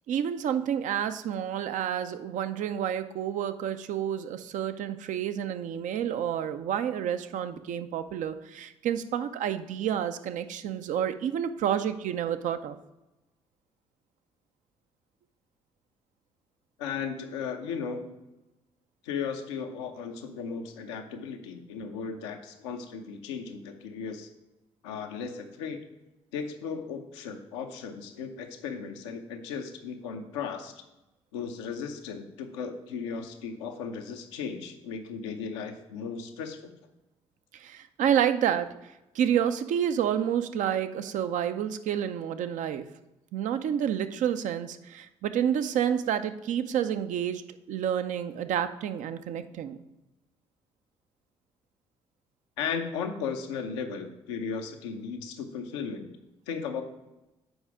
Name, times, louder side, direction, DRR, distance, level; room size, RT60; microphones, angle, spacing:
voice 1, 0.1-12.8 37.5-42.8 43.3-49.8, right 9 dB, 65° right, 10 dB, 0.6 m, -29 dB
voice 2, 16.8-18.1 19.0-24.3 24.8-25.9 26.3-30.7 31.3-36.7 52.6-56.1 56.5-56.8, left 6 dB, 85° left, 5 dB, 0.8 m, -36 dB
7.9 x 4.9 x 4.8 m, 0.98 s
hypercardioid pair, 50°, 14 cm